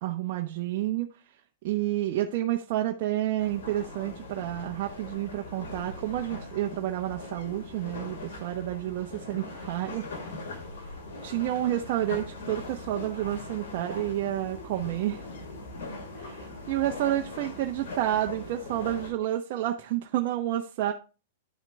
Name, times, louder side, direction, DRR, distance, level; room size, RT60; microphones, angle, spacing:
voice 1, 0.0-1.2 1.6-10.0 11.2-15.2 16.2-20.9, right 13 dB, 55° right, 2 dB, 1.0 m, -30 dB
sound 1, 3.4-19.1, left 2 dB, 75° left, 4.4 m, -41 dB
11.0 x 5.9 x 3.3 m, 0.33 s
hypercardioid pair, 125°, 0 cm